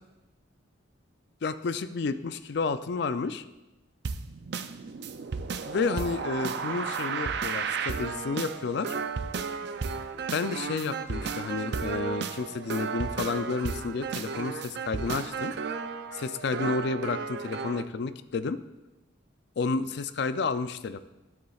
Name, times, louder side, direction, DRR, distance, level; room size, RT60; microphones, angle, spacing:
voice 1, 1.4-3.4 5.7-8.9 10.3-15.5 16.1-18.6 19.6-21.0, left 4 dB, 60° left, 12 dB, 0.4 m, -31 dB
sound 1, 4.0-17.9, right 5 dB, 55° right, 0.4 m, -34 dB
12.5 x 8.2 x 2.4 m, 1.0 s
head